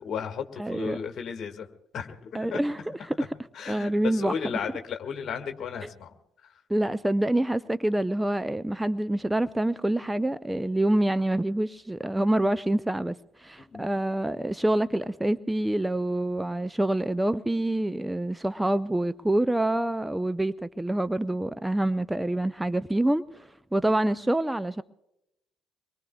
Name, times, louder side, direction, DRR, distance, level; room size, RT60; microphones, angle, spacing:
voice 1, 0.0-1.7 1.9-2.7 3.5-6.1 13.6-13.9, left 7 dB, 45° left, 1.8 m, -34 dB
voice 2, 0.6-1.0 2.3-3.3 3.7-4.6 5.8-5.9 6.7-24.8, right 1 dB, 10° right, 0.4 m, -26 dB
25.0 x 22.5 x 2.3 m
figure-of-eight pair, 50°, 0 cm